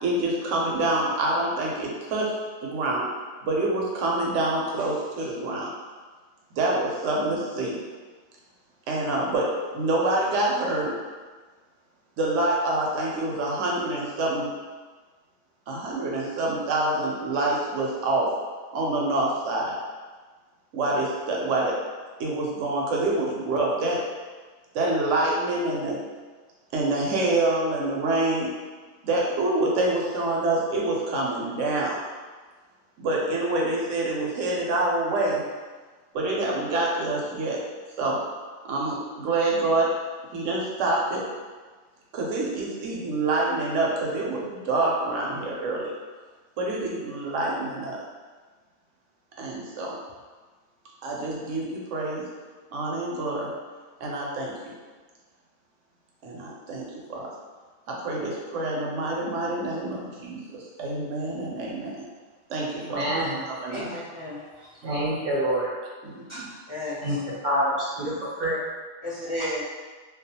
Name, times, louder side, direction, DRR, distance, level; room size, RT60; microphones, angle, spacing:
voice 1, 0.0-2.3 2.6-3.1 3.4-5.7 6.5-7.8 8.9-10.9 12.2-14.5 15.7-18.3 18.7-19.8 20.7-21.8 22.2-24.0 24.7-26.0 26.7-28.5 29.0-32.0 33.0-35.4 36.1-37.6 38.0-38.2 38.7-39.9 40.3-41.2 42.1-45.9 46.6-48.0 49.4-50.0 51.0-52.3 52.7-53.5 54.0-54.5 56.2-57.3 57.9-62.0 62.5-63.1 63.5-63.9 64.8-64.9 66.0-66.5, right 2 dB, 90° right, -2 dB, 0.9 m, -26 dB
voice 2, 62.7-63.4 64.8-65.7 67.0-67.2 67.4-68.6, equal, 60° right, -8 dB, 0.6 m, -26 dB
voice 3, 63.7-64.7 66.3-67.2 69.0-69.6, left 1 dB, 30° left, -11 dB, 0.7 m, -34 dB
2.4 x 2.2 x 2.7 m, 1.4 s
omnidirectional pair, 1.2 m